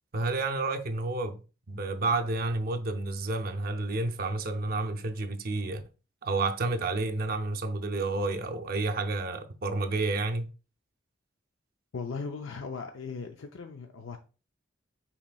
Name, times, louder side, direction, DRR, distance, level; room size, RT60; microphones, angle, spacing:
voice 1, 0.1-1.4 1.7-5.8 6.2-10.5, right 3 dB, 50° right, 0.5 m, -30 dB
voice 2, 11.9-14.2, left 4 dB, 80° left, 0.5 m, -38 dB
5.7 x 4.1 x 2.3 m
head